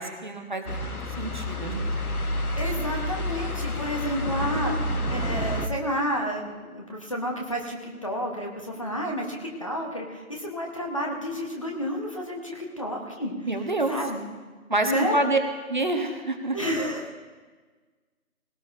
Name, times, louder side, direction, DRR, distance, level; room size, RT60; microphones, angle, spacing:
voice 1, 0.0-2.2 13.5-13.9 14.7-15.4 15.7-16.6, right 2 dB, 35° right, 4 dB, 1.0 m, -28 dB
sound 1, 0.7-5.7, left 1 dB, 85° left, 1.3 m, -29 dB
voice 2, 2.5-4.8 5.1-13.3 13.9-14.2 14.8-15.2 16.5-17.2, equal, 25° left, 0 dB, 1.0 m, -30 dB
19.0 x 17.5 x 2.6 m, 1.4 s
figure-of-eight pair, 165°, 43 cm